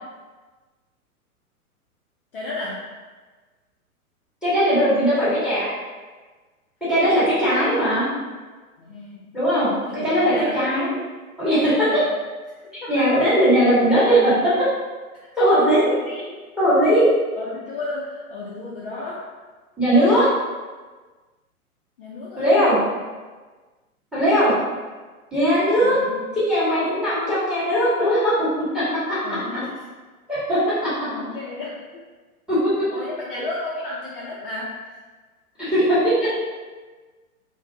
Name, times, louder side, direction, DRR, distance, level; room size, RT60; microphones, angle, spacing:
voice 1, 2.3-2.9 7.8-7.9 8.8-9.4 9.8-10.6 11.8-12.1 12.8-13.1 15.9-16.3 17.4-19.3 22.0-22.5 25.8-26.3 29.2-29.7 31.0-32.0 32.9-34.8, left 2 dB, 40° left, -6 dB, 0.4 m, -33 dB
voice 2, 4.4-5.7 6.9-8.1 9.3-11.0 11.4-11.9 12.9-14.7 15.4-15.8 16.6-17.1 19.8-20.3 22.4-22.8 24.1-24.5 25.3-26.0 26.3-29.4 30.3-30.9 32.5-32.7 35.6-36.3, equal, ahead, -11 dB, 0.8 m, -19 dB
2.5 x 2.2 x 2.5 m, 1.3 s
figure-of-eight pair, 110°, 45 cm